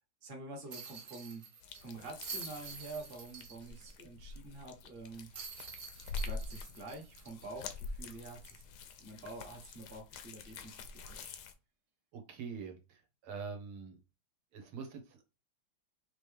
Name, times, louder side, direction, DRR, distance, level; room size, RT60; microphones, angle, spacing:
voice 1, 0.2-1.4 1.8-5.3 6.2-8.6 9.0-10.8 11.1-11.3, right 2 dB, 30° right, 2 dB, 1.2 m, -47 dB
sound 1, 0.7-3.9 4.3-4.4 5.3-8.0 8.5-8.6 10.7-10.9, right 5 dB, 55° right, 0.9 m, -48 dB
sound 2, 1.6-11.5, left 3 dB, 70° left, 1.0 m, -46 dB
voice 2, 12.1-14.0 14.5-15.2, right 5 dB, 80° right, 4 dB, 1.8 m, -44 dB
5.2 x 3.0 x 3.3 m, 0.28 s
omnidirectional pair, 2.3 m